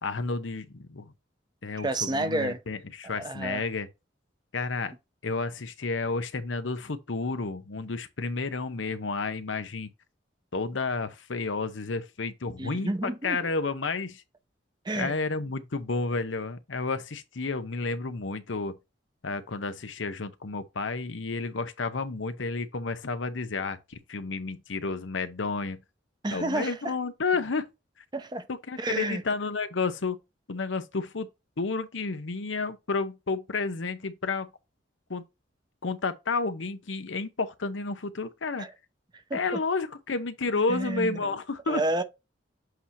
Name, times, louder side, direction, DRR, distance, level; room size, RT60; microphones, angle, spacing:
voice 1, 0.0-1.1 1.6-3.9 4.5-4.9 5.2-9.9 10.5-14.2 14.9-18.8 19.2-25.8 26.3-27.7 28.5-30.2 30.5-31.3 31.6-34.5 35.1-35.2 35.8-38.7 39.3-41.8, left 4 dB, 90° left, 0.8 m, -31 dB
voice 2, 1.8-2.6 3.0-3.6 12.6-13.4 14.8-15.1 26.2-26.9 28.1-28.5 28.8-29.2 38.6-38.7 39.3-39.4 40.7-41.4 41.7-42.0, right 2 dB, 25° right, 0.7 m, -30 dB
8.0 x 2.8 x 4.6 m
head